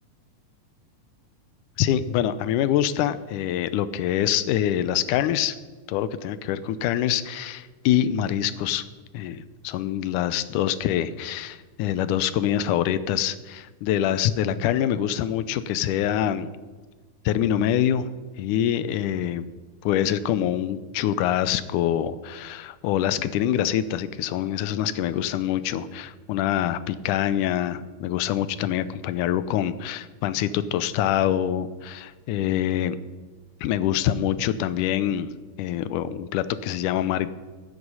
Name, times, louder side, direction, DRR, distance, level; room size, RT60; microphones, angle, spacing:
voice 1, 1.8-5.6 5.9-8.8 9.1-16.5 17.3-18.1 18.4-19.5 19.8-33.0 33.6-35.3 35.6-37.3, left 11 dB, 90° left, 14 dB, 2.2 m, -25 dB
15.5 x 8.0 x 5.5 m, 1.3 s
omnidirectional pair, 3.5 m